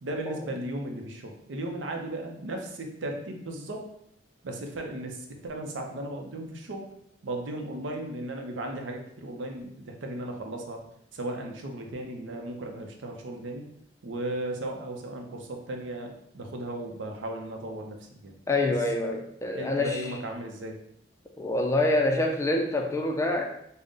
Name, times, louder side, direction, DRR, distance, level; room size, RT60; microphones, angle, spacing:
voice 1, 0.0-3.9 4.4-6.9 7.2-10.8 11.1-13.7 14.0-18.4 18.6-18.7 19.5-20.8, right 1 dB, 85° right, 3 dB, 0.6 m, -36 dB
voice 2, 18.5-20.1 21.4-23.4, left 2 dB, 15° left, 3 dB, 0.3 m, -26 dB
3.7 x 2.1 x 3.7 m, 0.74 s
head